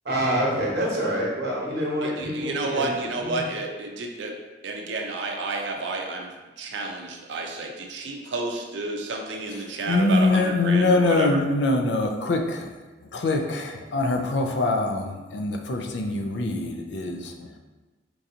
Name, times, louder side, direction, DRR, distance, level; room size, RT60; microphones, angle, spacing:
voice 1, 0.0-2.9, right 1 dB, 60° right, -3 dB, 0.9 m, -26 dB
voice 2, 2.0-4.3 4.6-11.4, right 2 dB, 85° right, 2 dB, 0.5 m, -31 dB
voice 3, 9.9-12.7 13.1-17.3, left 2 dB, 80° left, 4 dB, 0.4 m, -23 dB
4.5 x 2.5 x 2.7 m, 1.2 s
head